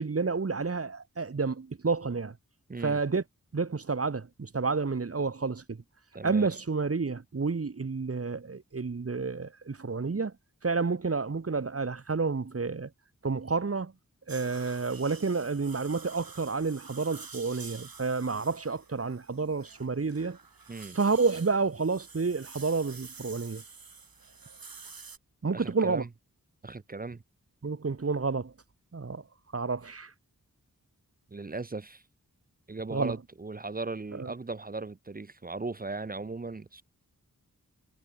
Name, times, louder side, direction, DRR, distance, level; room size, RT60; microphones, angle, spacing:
voice 1, 0.0-2.3 2.8-3.2 3.5-5.8 6.2-10.3 10.6-12.9 13.2-13.9 14.3-20.4 20.9-23.6 25.4-26.0 27.6-28.5 28.9-29.2 29.5-30.1 32.9-33.2 34.2-34.3, right 4 dB, 40° right, 1.0 m, -30 dB
voice 2, 2.7-3.0 6.1-6.5 20.7-21.0 25.5-26.1 26.6-27.2 31.3-32.0 32.7-36.8, right 3 dB, 25° right, 0.6 m, -37 dB
sound 1, 14.3-25.2, right 4 dB, 85° right, 3.9 m, -49 dB
wide cardioid pair, 45°, 34 cm